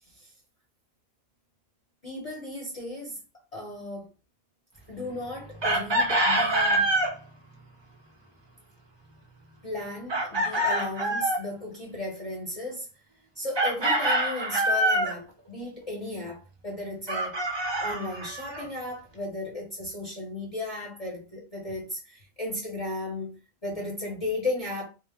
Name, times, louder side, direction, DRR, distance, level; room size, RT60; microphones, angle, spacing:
voice 1, 2.0-3.2 3.5-4.1 4.9-6.9 9.6-12.9 13.3-17.4 17.8-24.9, left 2 dB, 40° left, 0.7 m, -35 dB
Chicken rooster, 5.6-7.1 10.1-11.4 13.5-15.2 17.1-18.6, right 1 dB, 45° right, 0.3 m, -25 dB
2.1 x 2.0 x 3.3 m
omnidirectional pair, 1.1 m